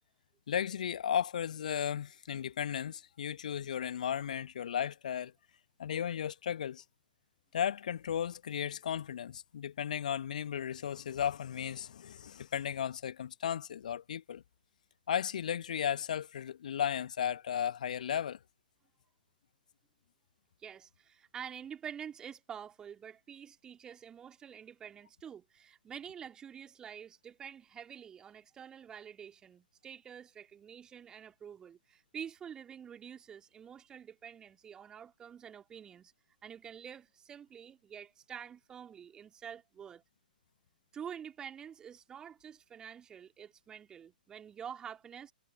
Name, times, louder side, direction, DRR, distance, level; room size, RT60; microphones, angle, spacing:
voice 1, 0.5-5.3 5.8-6.8 7.5-14.4 15.1-18.4, left 9 dB, 55° left, 1.6 m, -35 dB
voice 2, 20.6-36.1 36.4-40.0 40.9-45.3, right 8 dB, 15° right, 2.6 m, -47 dB
figure-of-eight pair, 120°, 5 cm